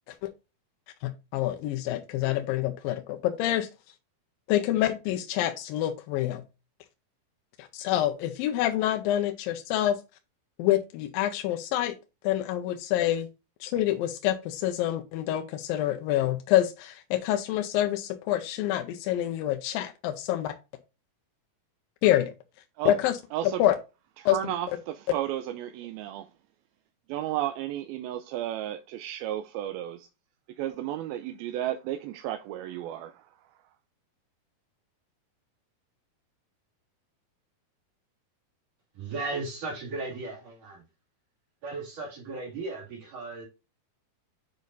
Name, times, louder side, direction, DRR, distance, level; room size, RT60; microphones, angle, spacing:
voice 1, 1.0-3.7 4.5-6.4 7.6-10.0 10.6-12.0 12.2-13.3 13.6-20.5 22.0-22.3 22.9-23.2 23.4-23.7 24.3-24.4, left 13 dB, 80° left, 2.4 m, -27 dB
voice 2, 23.3-23.6 24.2-26.3 27.1-30.1 30.6-33.3, right 12 dB, 85° right, 2.5 m, -33 dB
voice 3, 38.9-40.8 41.6-43.5, right 3 dB, 60° right, 3.8 m, -36 dB
8.5 x 5.2 x 2.6 m
omnidirectional pair, 4.3 m